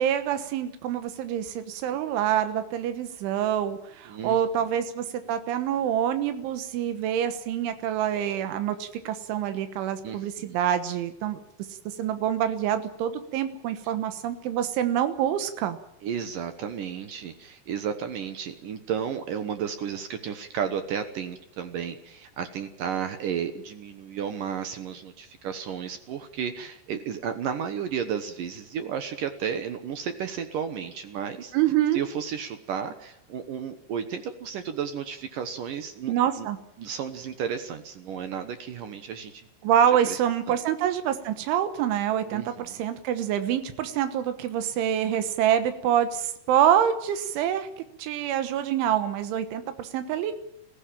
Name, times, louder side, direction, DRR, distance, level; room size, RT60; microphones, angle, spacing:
voice 1, 0.0-11.4 12.0-15.8 31.5-32.0 36.1-36.6 39.6-47.7 48.0-50.3, right 10 dB, 90° right, 9 dB, 3.7 m, -26 dB
voice 2, 4.1-4.4 10.0-10.5 16.0-31.5 31.9-36.5 36.8-39.5 40.1-40.2 40.5-40.6 42.3-42.8, right 7 dB, 70° right, 9 dB, 2.1 m, -33 dB
21.0 x 15.5 x 8.9 m, 0.79 s
omnidirectional pair, 5.3 m